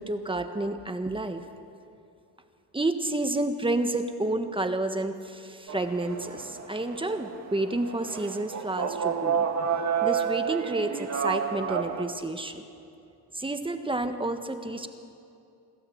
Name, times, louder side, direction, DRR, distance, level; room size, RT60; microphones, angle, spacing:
voice 1, 0.0-1.5 2.7-9.5 10.0-12.6 13.3-14.9, right 2 dB, 10° right, 7 dB, 1.4 m, -30 dB
sound 1, 5.7-12.0, right 7 dB, 40° right, 1.8 m, -30 dB
27.5 x 13.0 x 7.9 m, 2.6 s
cardioid pair, 105°, 42 cm